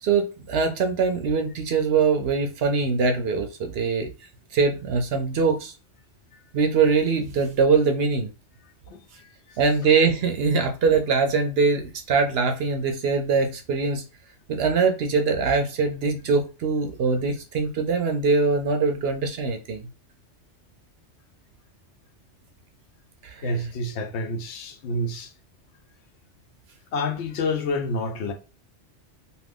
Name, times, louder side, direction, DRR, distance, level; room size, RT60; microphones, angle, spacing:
voice 1, 0.0-4.1 4.5-5.7 6.5-8.3 9.6-14.0 14.5-19.8 23.2-23.7, right 4 dB, 65° right, 0.7 m, -22 dB
voice 2, 23.4-25.3 26.9-28.3, left 2 dB, 70° left, 0.9 m, -28 dB
2.6 x 2.5 x 3.4 m
omnidirectional pair, 1.2 m